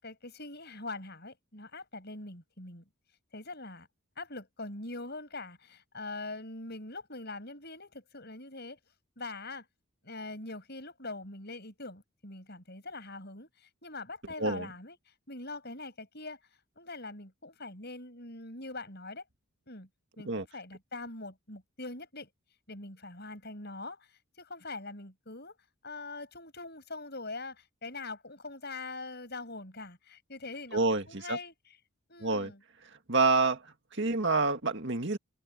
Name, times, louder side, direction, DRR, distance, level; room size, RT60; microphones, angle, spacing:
voice 1, 0.0-2.8 3.3-3.9 4.2-8.8 9.2-9.7 10.0-16.4 16.7-19.2 19.7-19.9 20.2-22.3 22.7-25.6 25.8-31.5 32.1-32.6, left 2 dB, 45° left, 7.9 m, -43 dB
voice 2, 30.7-31.4 32.2-32.5 33.1-33.6 33.9-35.2, right 3 dB, 50° right, 2.0 m, -27 dB
head